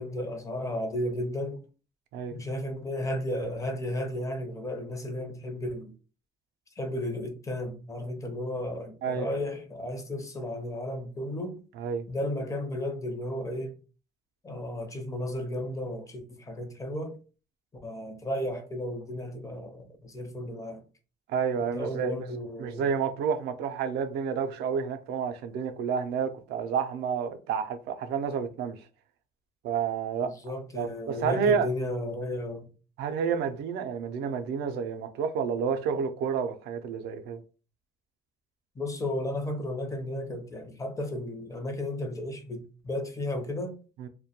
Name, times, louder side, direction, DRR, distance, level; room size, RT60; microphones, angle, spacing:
voice 1, 0.0-1.6 2.3-5.9 6.8-11.6 12.1-13.8 14.4-17.1 17.8-20.8 21.6-22.9 30.2-32.7 38.8-43.7, left 1 dB, 20° left, 0.5 m, -34 dB
voice 2, 9.0-9.3 11.8-12.0 21.3-22.3 22.6-28.8 29.6-30.3 30.7-31.7 33.0-37.4 44.0-44.1, right 6 dB, 75° right, 0.4 m, -30 dB
2.2 x 2.1 x 2.8 m
cardioid pair, 110°, 17 cm